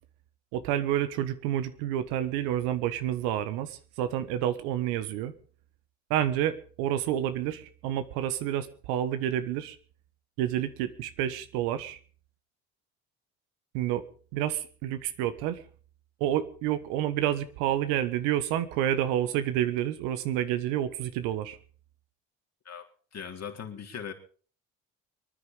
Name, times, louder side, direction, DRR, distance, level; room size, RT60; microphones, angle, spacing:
voice 1, 0.5-5.3 6.1-9.8 10.4-12.0 13.7-14.0 14.3-15.6 16.2-21.6, right 11 dB, 85° right, 12 dB, 1.4 m, -29 dB
voice 2, 22.7-24.1, left 7 dB, 45° left, 3 dB, 3.6 m, -40 dB
24.5 x 9.9 x 5.5 m, 0.43 s
hypercardioid pair, 65°, 36 cm